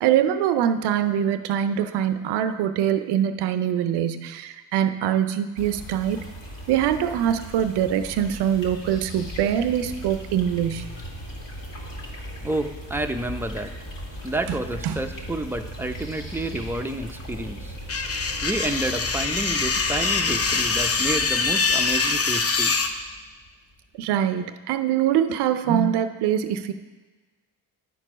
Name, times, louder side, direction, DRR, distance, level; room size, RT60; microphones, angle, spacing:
voice 1, 0.0-6.2 6.7-10.8 14.8-15.0 24.0-26.7, right 10 dB, 80° right, 10 dB, 0.6 m, -23 dB
sound 1, 5.6-23.7, equal, 55° left, 2.2 m, -38 dB
voice 2, 12.4-13.7 14.2-17.8 18.4-22.9, right 1 dB, 5° right, 5 dB, 0.7 m, -29 dB
sound 2, 17.9-22.9, left 4 dB, 35° left, 0.8 m, -24 dB
10.5 x 4.6 x 5.0 m, 1.3 s
supercardioid pair, 60°, 40 cm